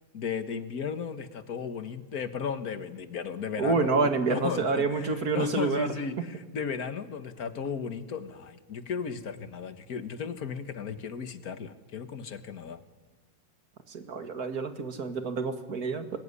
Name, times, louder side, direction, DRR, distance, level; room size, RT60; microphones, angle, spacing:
voice 1, 0.1-12.8, left 6 dB, 55° left, 11 dB, 1.8 m, -35 dB
voice 2, 3.6-6.0 13.9-16.2, right 4 dB, 55° right, 8 dB, 2.3 m, -28 dB
25.0 x 20.5 x 9.8 m, 1.2 s
omnidirectional pair, 2.0 m